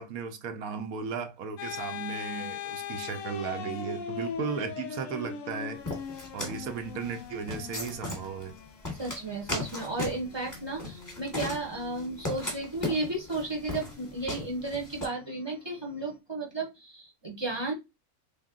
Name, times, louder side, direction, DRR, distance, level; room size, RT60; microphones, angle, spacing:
voice 1, 0.0-5.8 6.3-8.5, right 6 dB, 75° right, 1.1 m, -35 dB
sound 1, 1.6-16.1, left 8 dB, 70° left, 0.9 m, -42 dB
sound 2, 5.9-15.1, left 2 dB, 15° left, 1.2 m, -37 dB
voice 2, 9.0-17.7, right 2 dB, 20° right, 0.8 m, -33 dB
3.6 x 2.2 x 3.6 m
omnidirectional pair, 1.5 m